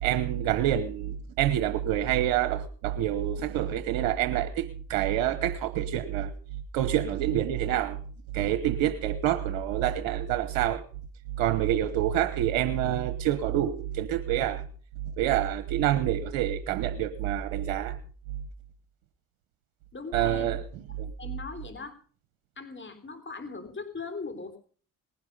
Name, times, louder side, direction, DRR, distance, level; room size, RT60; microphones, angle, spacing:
voice 1, 0.0-6.3 6.7-8.0 8.3-10.8 11.4-14.6 15.2-18.0 20.1-20.6 21.0-21.1, right 11 dB, 90° right, 1.1 m, -27 dB
voice 2, 19.9-20.6 20.9-22.0 22.6-24.6, left 4 dB, 30° left, 3.4 m, -39 dB
19.5 x 11.0 x 5.4 m
hypercardioid pair, 55°, 41 cm